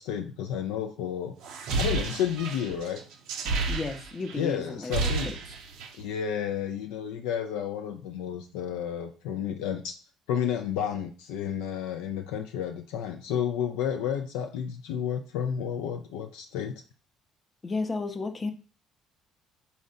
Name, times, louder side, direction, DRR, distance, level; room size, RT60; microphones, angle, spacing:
voice 1, 0.0-1.4 1.8-3.0 4.4-5.3 6.0-10.0 10.3-16.8, left 9 dB, 75° left, 5 dB, 0.3 m, -31 dB
sound 1, 1.4-4.4 4.7-6.0, right 3 dB, 70° right, 0.6 m, -31 dB
voice 2, 3.7-5.3 17.6-18.5, left 3 dB, 35° left, 7 dB, 0.6 m, -33 dB
4.1 x 2.1 x 3.7 m, 0.37 s
hypercardioid pair, 55°, 0 cm